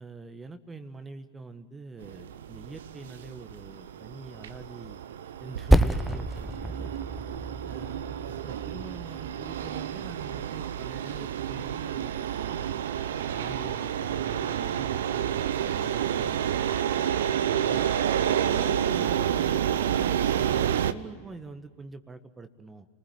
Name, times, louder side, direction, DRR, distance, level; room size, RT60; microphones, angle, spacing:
voice 1, 0.0-5.0 5.4-6.9 7.7-12.8 13.3-16.6 17.5-22.9, right 3 dB, 15° right, 9 dB, 1.5 m, -44 dB
sound 1, 2.0-20.9, right 9 dB, 70° right, 1.0 m, -30 dB
Percussion, 5.7-10.5, right 1 dB, ahead, 0.9 m, -28 dB
30.0 x 20.5 x 9.4 m, 1.5 s
figure-of-eight pair, 90°, 0 cm